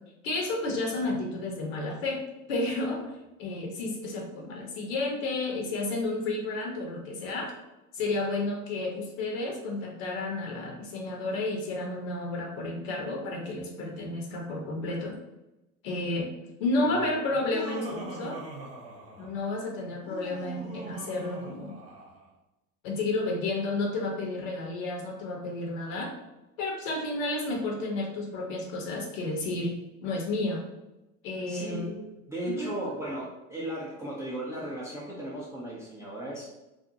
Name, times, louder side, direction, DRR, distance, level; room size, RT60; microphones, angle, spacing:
voice 1, 0.2-3.1 3.4-7.5 7.9-15.2 15.8-16.3 16.6-18.4 19.2-21.7 22.8-26.1 26.6-29.8 30.0-30.6 31.2-32.1 32.4-32.7, left 2 dB, 60° left, 0 dB, 0.9 m, -31 dB
Laughter, 17.3-19.4 19.9-22.3, right 1 dB, 30° right, 1.1 m, -42 dB
voice 2, 31.5-31.9 32.3-36.5, right 1 dB, 5° right, -8 dB, 0.4 m, -36 dB
2.5 x 2.1 x 2.8 m, 0.97 s
hypercardioid pair, 90°, 44 cm